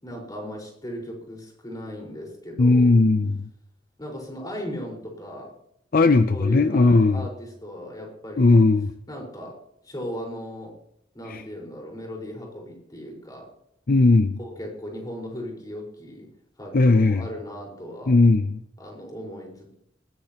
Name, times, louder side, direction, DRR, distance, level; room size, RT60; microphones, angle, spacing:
voice 1, 0.0-3.0 4.0-5.6 6.3-8.6 9.1-9.6 9.8-10.8 11.1-13.5 14.4-16.3 16.6-18.2 18.8-19.8, equal, 20° left, 0 dB, 4.9 m, -37 dB
voice 2, 2.6-3.5 5.9-7.3 8.4-8.9 11.3-11.4 13.9-14.4 16.7-17.3 18.1-18.6, left 3 dB, 50° left, 10 dB, 0.6 m, -18 dB
20.0 x 17.5 x 3.0 m, 0.75 s
head